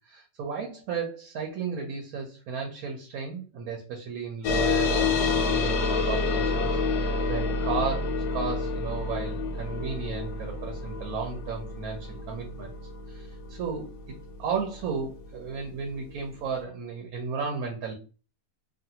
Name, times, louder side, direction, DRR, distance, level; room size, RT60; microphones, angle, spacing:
voice 1, 0.1-12.7 13.1-13.9 14.4-17.9, right 5 dB, 70° right, 1 dB, 1.0 m, -34 dB
sound 1, 4.4-15.4, left 4 dB, 80° left, 1.1 m, -28 dB
2.6 x 2.5 x 2.7 m, 0.34 s
omnidirectional pair, 1.7 m